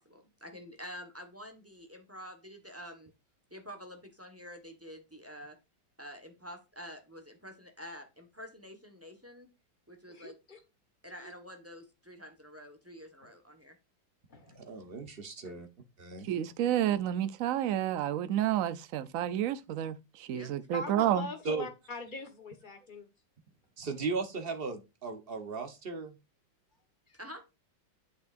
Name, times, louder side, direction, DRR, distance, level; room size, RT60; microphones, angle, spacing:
voice 1, 0.0-3.1 3.5-5.6 6.0-9.5 9.9-10.3 11.0-13.8 20.3-20.5 27.2-27.5, equal, 10° right, 1.2 m, -48 dB
voice 2, 10.1-10.6 11.2-11.3 14.3-14.7 15.4-15.6 20.4-23.1 27.1-27.2, left 2 dB, 30° left, 1.5 m, -43 dB
voice 3, 14.5-15.7 16.0-16.3 21.4-21.7 23.8-26.2, right 4 dB, 35° right, 1.1 m, -36 dB
voice 4, 16.2-21.3, right 11 dB, 65° right, 0.9 m, -30 dB
8.2 x 6.5 x 2.6 m
omnidirectional pair, 2.0 m